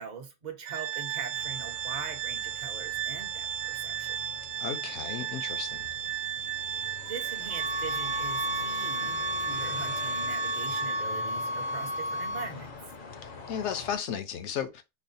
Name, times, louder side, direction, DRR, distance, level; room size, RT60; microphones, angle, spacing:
voice 1, 0.0-4.2 7.1-12.7, right 5 dB, 45° right, 0.8 m, -42 dB
Organ, 0.6-11.3, right 10 dB, 65° right, 0.9 m, -35 dB
sound 1, 1.3-14.0, left 4 dB, 50° left, 0.7 m, -46 dB
voice 2, 4.6-5.9 13.5-14.8, left 8 dB, 75° left, 1.0 m, -34 dB
sound 2, 7.5-12.5, left 1 dB, 10° left, 0.6 m, -33 dB
5.4 x 2.1 x 2.6 m
omnidirectional pair, 1.2 m